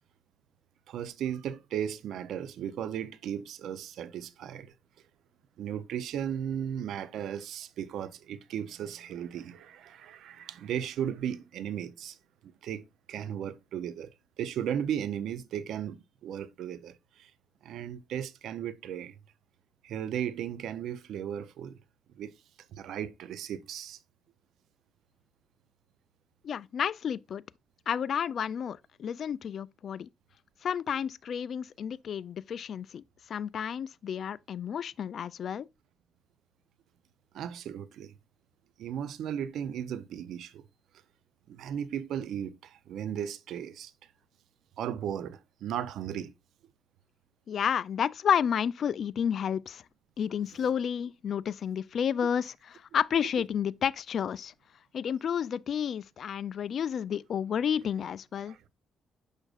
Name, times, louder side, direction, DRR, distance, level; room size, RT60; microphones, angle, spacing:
voice 1, 0.9-4.7 5.6-12.2 12.4-17.3 17.6-19.2 19.8-21.8 22.2-22.3 22.7-24.0 37.3-38.1 38.8-40.6 41.5-43.9 44.8-46.3 58.5-58.7, right 9 dB, 75° right, 0.6 m, -36 dB
voice 2, 26.4-27.4 27.9-30.1 30.6-33.0 33.3-35.7 47.5-49.8 50.2-52.5 52.9-54.5 54.9-58.6, left 8 dB, 60° left, 0.3 m, -31 dB
6.5 x 6.3 x 2.4 m
cardioid pair, 90°, 0 cm